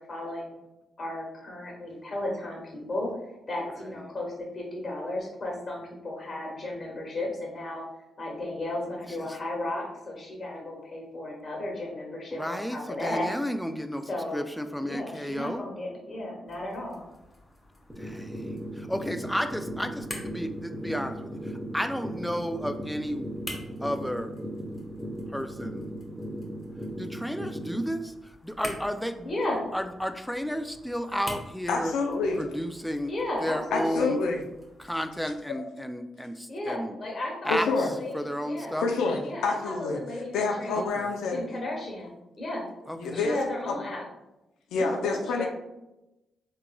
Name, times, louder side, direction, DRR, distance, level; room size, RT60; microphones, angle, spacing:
voice 1, 0.1-0.5 1.0-3.1 3.5-7.8 8.2-13.3 14.1-14.5 14.8-17.0 29.2-29.6 33.1-34.2 36.5-38.8 39.2-41.0 41.3-42.6 43.1-44.0 44.7-45.5, left 1 dB, 50° left, -1 dB, 1.3 m, -34 dB
voice 2, 12.3-15.7 18.0-18.3 18.8-21.4 21.7-23.2 23.8-24.3 25.3-25.9 27.0-28.1 28.4-29.3 29.7-31.9 32.4-33.1 33.4-34.2 34.8-37.0 37.4-37.7 38.1-38.9 40.8-41.1 42.9-43.2, equal, 5° left, 8 dB, 0.4 m, -32 dB
sound 1, 16.5-35.4, left 1 dB, 20° left, 1.1 m, -47 dB
sound 2, 17.9-27.9, equal, 15° right, 1.0 m, -37 dB
voice 3, 31.7-32.5 33.7-34.4 35.5-35.7 37.5-37.9 38.8-41.4 43.0-43.4 44.7-45.5, left 3 dB, 85° left, 2 dB, 0.4 m, -28 dB
3.7 x 3.0 x 2.2 m, 0.96 s
supercardioid pair, 50°, 0 cm